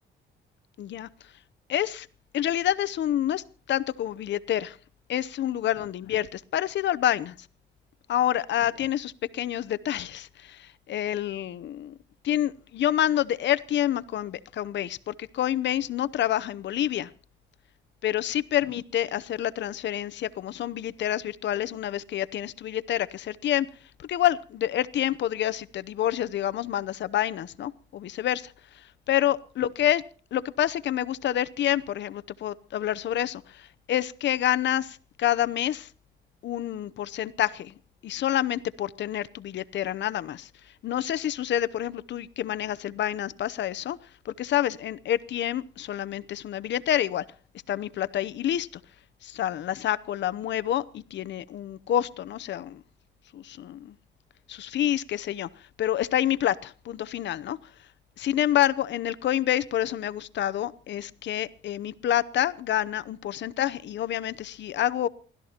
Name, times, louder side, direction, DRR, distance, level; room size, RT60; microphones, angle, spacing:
voice 1, 0.8-1.1 1.7-2.1 2.3-4.8 5.1-7.4 8.1-11.9 12.2-17.1 18.0-23.7 24.0-30.0 30.3-35.9 36.4-37.7 38.0-40.5 40.8-44.0 44.2-47.2 47.7-48.7 49.2-52.8 53.3-53.9 54.5-57.6 58.2-65.1, left 11 dB, 65° left, 0.7 m, -28 dB
28.5 x 13.0 x 2.9 m
cardioid pair, 90°, 20 cm